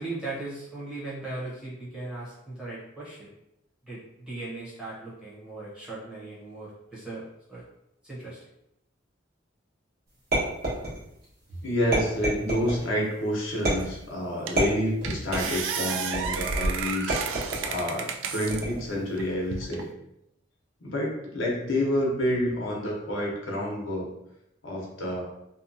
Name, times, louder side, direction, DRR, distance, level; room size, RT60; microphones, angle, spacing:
voice 1, 0.0-3.3 3.9-7.2 7.5-7.6 8.0-8.4 11.5-11.6, right 2 dB, 5° right, -8 dB, 0.9 m, -38 dB
sound 1, 10.3-11.3 11.9-12.8 13.7-14.1 14.6-15.6 16.1-16.5 17.1-17.8 18.5-19.0, right 1 dB, 50° right, 1.2 m, -29 dB
voice 2, 11.6-17.1 17.6-19.9 20.8-24.1 24.6-25.2, equal, 85° left, -3 dB, 0.8 m, -28 dB
sound 2, 13.8-13.9 14.5-14.7 15.0-18.6 19.2-19.8, right 5 dB, 75° right, 0.3 m, -31 dB
2.7 x 2.2 x 2.6 m, 0.81 s
head